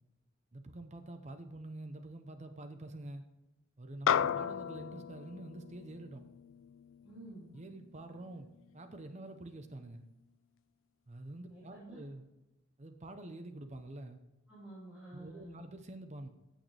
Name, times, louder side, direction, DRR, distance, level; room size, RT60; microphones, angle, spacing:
voice 1, 0.5-3.2 3.8-6.2 7.5-8.5 8.7-10.0 11.1-12.2 12.8-14.2 15.1-16.3, right 1 dB, 35° right, 7 dB, 0.8 m, -47 dB
sound 1, 4.1-8.7, left 8 dB, 75° left, 0.3 m, -36 dB
voice 2, 7.0-7.5 11.5-12.0 14.5-15.6, right 1 dB, 5° right, -11 dB, 3.7 m, -50 dB
15.0 x 6.4 x 3.4 m, 0.97 s
head